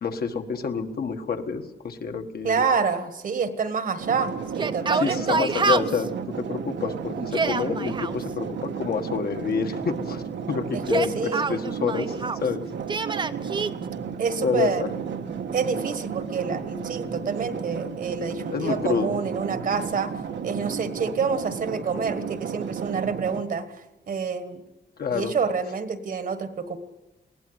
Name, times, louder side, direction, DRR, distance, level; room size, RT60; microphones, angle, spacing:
voice 1, 0.0-2.6 4.9-6.1 6.4-12.6 14.4-14.7 18.5-19.2 25.0-25.3, left 6 dB, 60° left, 5 dB, 1.6 m, -28 dB
voice 2, 2.4-5.4 10.7-11.5 14.2-14.8 15.5-20.1 20.4-23.7 24.1-24.6 25.1-26.8, right 5 dB, 50° right, 12 dB, 1.4 m, -27 dB
sound 1, 4.0-23.4, right 6 dB, 85° right, 1.4 m, -33 dB
Yell, 4.5-6.1 7.2-8.1 10.7-12.5 12.9-13.7, right 4 dB, 25° right, 0.7 m, -27 dB
20.5 x 17.5 x 8.0 m, 1.0 s
wide cardioid pair, 175°, 18 cm